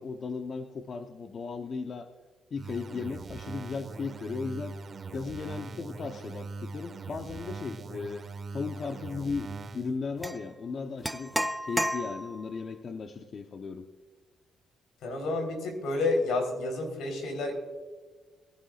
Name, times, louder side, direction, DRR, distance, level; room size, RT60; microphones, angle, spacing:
voice 1, 0.0-2.1 2.5-4.8 5.1-11.3 11.6-13.9, left 5 dB, 50° left, 6 dB, 0.8 m, -36 dB
sound 1, 2.6-10.0, right 4 dB, 45° right, 1.3 m, -41 dB
sound 2, 10.2-10.4 11.0-12.5, equal, 5° right, 0.6 m, -31 dB
voice 2, 15.0-17.5, left 2 dB, 80° left, 3 dB, 3.9 m, -30 dB
20.0 x 11.5 x 2.4 m, 1.4 s
cardioid pair, 90°, 0 cm